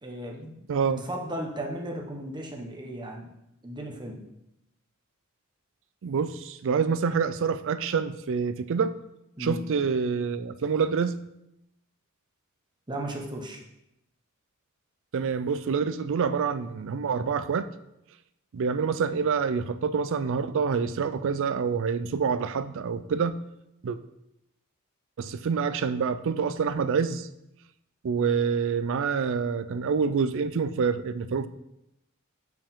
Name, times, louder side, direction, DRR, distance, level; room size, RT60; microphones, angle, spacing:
voice 1, 0.0-3.3 3.6-4.2 9.4-9.6 12.9-13.6, right 1 dB, 20° right, 0 dB, 1.0 m, -36 dB
voice 2, 0.7-1.0 6.0-8.9 9.4-11.2 15.1-17.7 18.5-23.4 23.8-24.0 25.2-27.3 28.0-31.5, right 6 dB, 60° right, 13 dB, 0.4 m, -27 dB
7.5 x 4.6 x 3.7 m, 0.84 s
head